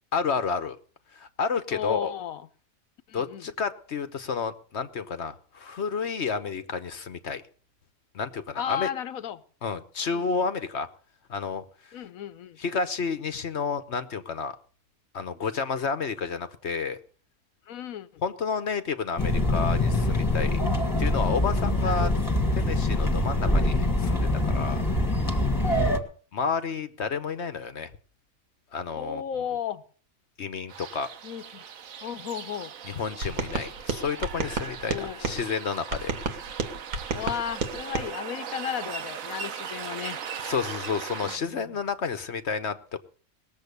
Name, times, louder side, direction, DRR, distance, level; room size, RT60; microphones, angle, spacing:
voice 1, 0.1-0.8 1.1-2.1 3.1-7.4 8.1-8.9 9.6-10.9 11.3-11.6 12.6-14.6 15.1-17.0 18.2-20.6 21.0-22.1 22.6-24.8 26.3-27.9 28.7-29.4 30.4-31.1 32.8-36.1 40.4-43.0, left 5 dB, 55° left, 11 dB, 1.1 m, -30 dB
voice 2, 1.7-2.4 3.1-3.5 8.5-9.4 10.1-10.2 11.9-12.6 17.7-18.1 21.8-22.1 25.7-26.1 29.0-29.8 31.2-31.6 32.0-32.7 34.9-35.3 37.1-40.2 41.2-41.7, left 9 dB, 75° left, 14 dB, 1.3 m, -34 dB
sound 1, 19.2-26.0, left 1 dB, 15° left, 1.6 m, -24 dB
sound 2, 30.7-41.4, right 7 dB, 70° right, 1.3 m, -39 dB
sound 3, 33.2-35.4 35.9-38.1, right 4 dB, 85° right, 2.1 m, -31 dB
19.5 x 7.4 x 6.7 m, 0.43 s
omnidirectional pair, 1.5 m